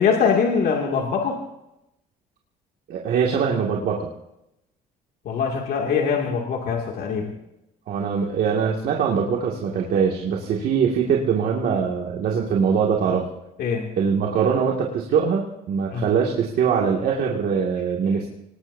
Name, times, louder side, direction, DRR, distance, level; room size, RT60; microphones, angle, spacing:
voice 1, 0.0-1.4 5.2-7.3 13.6-13.8 15.9-16.1, left 6 dB, 65° left, 0 dB, 2.5 m, -22 dB
voice 2, 2.9-4.1 7.9-13.3 14.0-18.3, right 6 dB, 65° right, -1 dB, 2.3 m, -22 dB
25.5 x 19.5 x 2.7 m, 0.86 s
cardioid pair, 110°, 17 cm